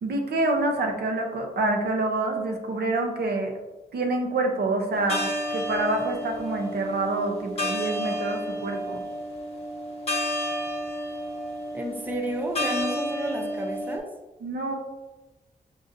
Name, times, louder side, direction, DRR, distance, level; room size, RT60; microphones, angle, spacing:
voice 1, 0.0-3.5 3.9-9.0 14.4-14.8, right 2 dB, 85° right, 3 dB, 0.7 m, -27 dB
sound 1, 4.9-14.0, equal, 40° left, 1.0 m, -31 dB
voice 2, 11.7-14.1, right 1 dB, 10° right, 2 dB, 0.5 m, -31 dB
6.2 x 2.6 x 2.6 m, 1.1 s
wide cardioid pair, 170°, 16 cm